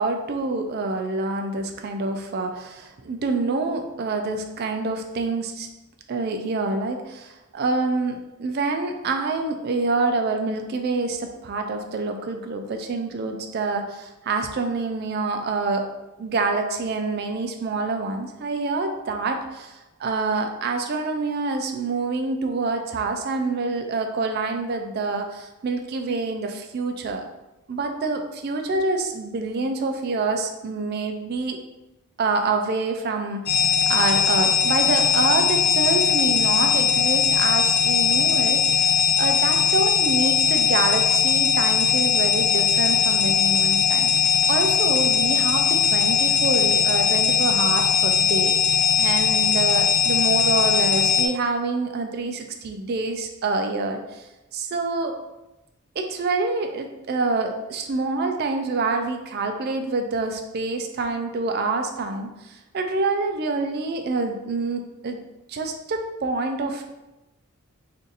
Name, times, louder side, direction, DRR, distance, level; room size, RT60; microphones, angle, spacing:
voice 1, 0.0-5.7 6.1-15.9 16.2-27.2 27.7-31.6 32.2-54.2 54.5-55.1 56.0-65.2 65.5-66.9, right 3 dB, 45° right, 5 dB, 0.3 m, -26 dB
sound 1, 33.5-51.3, left 7 dB, 45° left, 0.3 m, -20 dB
2.6 x 2.5 x 3.9 m, 0.99 s
head